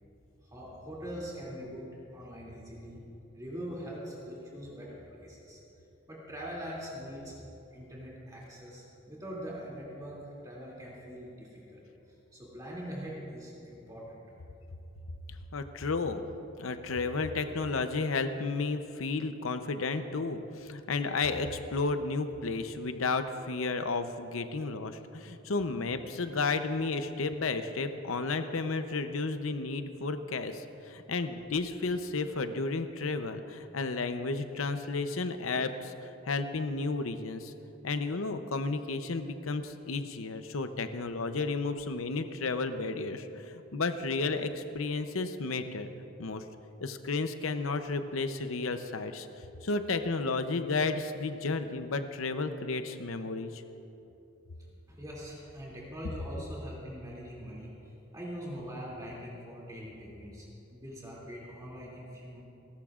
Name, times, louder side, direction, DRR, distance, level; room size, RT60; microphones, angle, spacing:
voice 1, 0.4-1.8 2.1-3.0 3.3-5.6 6.1-7.3 7.7-10.2 10.4-11.8 12.3-14.2 54.9-57.7 58.1-62.4, equal, 20° right, -5 dB, 2.6 m, -42 dB
voice 2, 15.5-16.3 16.6-35.9 36.3-37.5 37.8-45.9 46.2-46.4 46.8-49.3 49.6-53.6, left 3 dB, 85° left, 9 dB, 0.7 m, -32 dB
30.0 x 13.0 x 2.5 m, 2.9 s
head